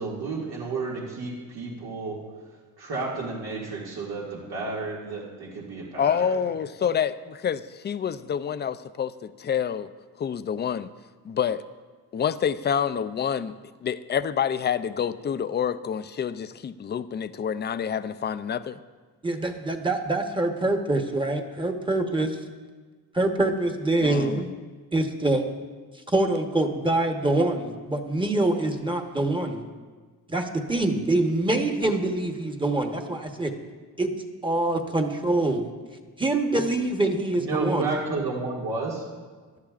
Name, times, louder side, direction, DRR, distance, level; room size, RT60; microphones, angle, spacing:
voice 1, 0.0-2.2 2.8-6.3 37.4-39.0, right 3 dB, 85° right, -6 dB, 2.1 m, -31 dB
voice 2, 6.0-9.9 10.2-10.9 11.2-11.6 12.1-13.5 13.8-18.8 24.0-24.5, left 8 dB, 30° left, 13 dB, 0.4 m, -27 dB
voice 3, 19.2-22.4 23.1-24.5 24.9-25.4 26.1-29.7 30.3-33.5 34.0-34.1 34.4-35.7 36.2-38.0, right 2 dB, 15° right, 4 dB, 1.0 m, -25 dB
17.0 x 11.5 x 2.4 m, 1.4 s
cardioid pair, 125°, 37 cm